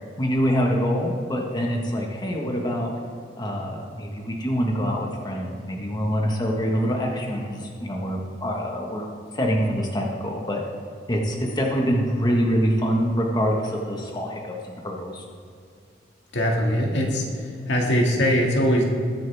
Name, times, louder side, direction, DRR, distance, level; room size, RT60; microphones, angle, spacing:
voice 1, 0.2-2.9 3.4-9.1 9.3-10.6 11.1-15.2, equal, 25° left, -1 dB, 1.5 m, -25 dB
voice 2, 16.3-18.8, equal, 75° left, -1 dB, 2.1 m, -22 dB
21.0 x 7.7 x 3.5 m, 2.3 s
head